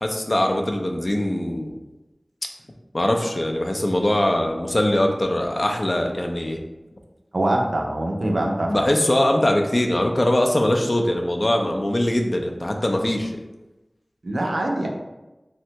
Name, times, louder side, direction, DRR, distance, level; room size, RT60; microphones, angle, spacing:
voice 1, 0.0-1.7 2.9-6.6 8.7-13.3, left 1 dB, 50° left, 2 dB, 0.4 m, -22 dB
voice 2, 7.3-8.9 14.2-14.9, right 1 dB, 90° right, 1 dB, 0.4 m, -23 dB
3.4 x 2.1 x 2.8 m, 1.1 s
wide cardioid pair, 40°, 0 cm